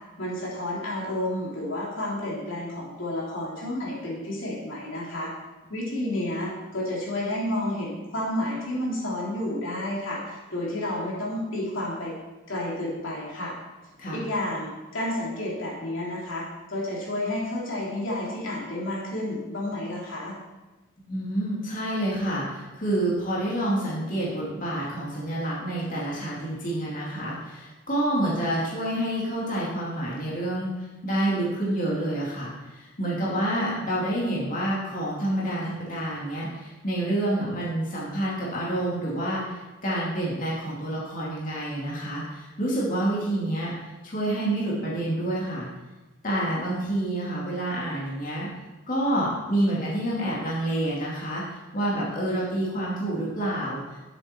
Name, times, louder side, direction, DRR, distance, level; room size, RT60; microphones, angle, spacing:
voice 1, 0.2-5.3 5.7-12.1 12.5-13.6 14.1-20.3, left 1 dB, 70° left, -4 dB, 3.2 m, -31 dB
voice 2, 21.1-43.7 44.0-45.7 46.2-48.5 48.9-54.0, right 1 dB, 40° left, -6 dB, 2.7 m, -28 dB
12.5 x 7.9 x 4.5 m, 1.1 s
head